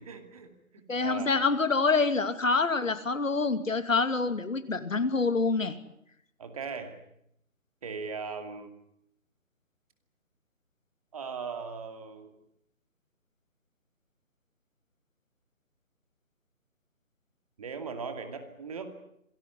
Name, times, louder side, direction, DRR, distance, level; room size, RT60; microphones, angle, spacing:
voice 1, 0.0-1.3 6.4-7.0 7.8-8.7 11.1-12.4 17.6-18.9, right 5 dB, 25° right, 7 dB, 2.5 m, -39 dB
voice 2, 0.9-5.7, left 4 dB, 65° left, 11 dB, 2.8 m, -26 dB
26.5 x 19.0 x 9.9 m, 0.75 s
figure-of-eight pair, 165°, 42 cm